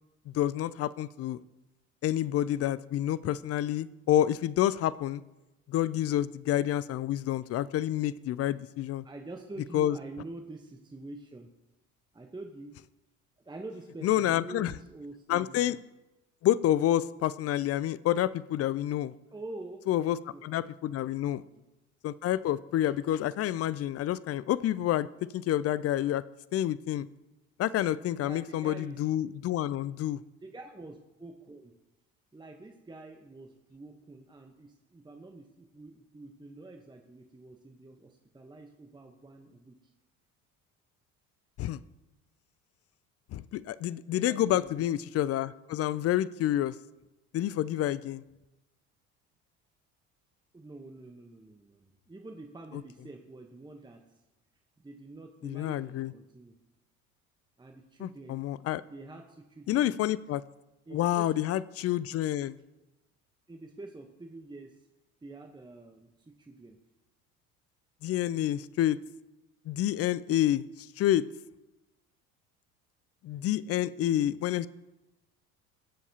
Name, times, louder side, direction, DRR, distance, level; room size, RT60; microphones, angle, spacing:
voice 1, 0.3-1.4 2.0-5.2 5.7-9.0 9.7-10.0 14.0-14.7 15.3-15.8 16.4-19.1 19.9-20.2 20.4-21.4 22.0-25.1 25.3-26.2 26.5-27.1 27.6-30.2 41.6-41.8 43.3-46.7 47.3-48.2 55.4-56.1 58.0-58.8 59.7-60.4 60.9-62.6 68.0-69.0 69.7-71.2 73.2-74.7, left 12 dB, 35° left, 18 dB, 0.4 m, -28 dB
voice 2, 9.0-11.5 12.1-12.8 13.4-15.8 19.3-20.4 21.3-21.4 28.2-29.0 30.4-31.8 32.3-39.9 44.1-44.9 50.5-54.1 54.8-56.5 57.6-58.4 58.9-59.9 60.9-61.3 63.5-64.8 65.2-66.8 73.3-73.5, right 2 dB, 10° right, 4 dB, 1.0 m, -46 dB
20.0 x 7.1 x 2.9 m, 1.0 s
hypercardioid pair, 60°, 41 cm